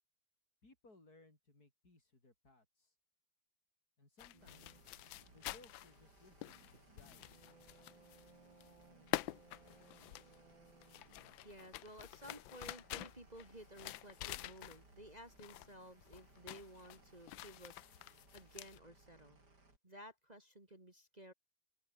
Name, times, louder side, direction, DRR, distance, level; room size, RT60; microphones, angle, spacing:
voice 1, 0.6-2.9 4.0-4.9 5.3-7.4, left 2 dB, 50° left, 6.1 m, -65 dB
sound 1, 4.2-8.3 8.6-15.1 15.4-15.8 16.0-18.8, left 16 dB, 85° left, 1.4 m, -47 dB
sound 2, 4.3-11.3, right 4 dB, 85° right, 4.6 m, -65 dB
sound 3, 4.4-19.8, right 2 dB, 60° right, 6.3 m, -67 dB
voice 2, 11.4-17.7 18.3-19.4 19.8-21.3, right 1 dB, 20° right, 2.8 m, -55 dB
omnidirectional pair, 2.0 m